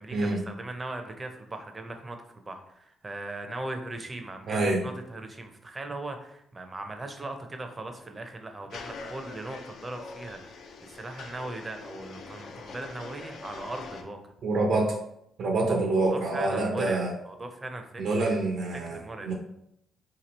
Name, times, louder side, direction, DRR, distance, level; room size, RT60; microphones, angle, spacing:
voice 1, 0.0-2.2 2.5-14.2 15.7-18.4 18.9-19.3, right 2 dB, 25° right, 6 dB, 0.6 m, -39 dB
voice 2, 4.5-4.8 14.4-14.9 15.4-17.1 18.0-19.3, right 2 dB, 70° right, 0 dB, 0.7 m, -26 dB
sound 1, 8.7-14.0, left 4 dB, 70° left, 0.5 m, -43 dB
3.0 x 2.7 x 4.1 m, 0.76 s
cardioid pair, 90°, 0 cm